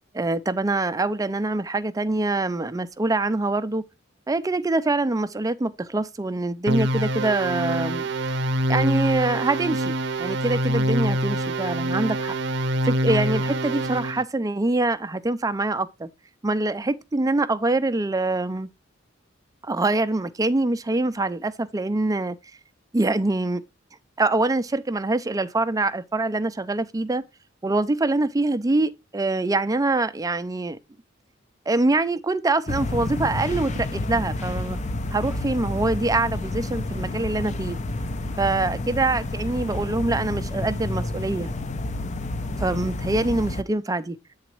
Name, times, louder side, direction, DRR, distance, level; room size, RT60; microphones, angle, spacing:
voice 1, 0.1-3.8 4.3-8.1 8.7-12.4 12.8-16.1 16.4-18.7 19.6-22.4 22.9-23.6 24.2-27.2 27.6-30.8 31.7-34.8 35.1-37.8 38.4-41.5 42.6-44.2, right 2 dB, 20° right, 0.4 m, -24 dB
sound 1, 6.7-14.2, right 1 dB, 60° right, 0.6 m, -25 dB
sound 2, 32.7-43.6, left 2 dB, 35° left, 0.6 m, -30 dB
8.6 x 4.0 x 4.5 m
head